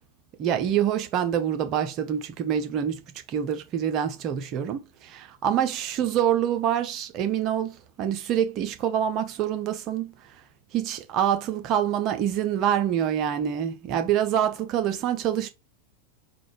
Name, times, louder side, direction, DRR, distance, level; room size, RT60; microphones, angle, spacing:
voice 1, 0.4-3.0 3.3-10.1 10.7-15.5, right 9 dB, 35° right, 0.7 m, -26 dB
3.9 x 2.4 x 3.3 m
figure-of-eight pair, 90°, 0 cm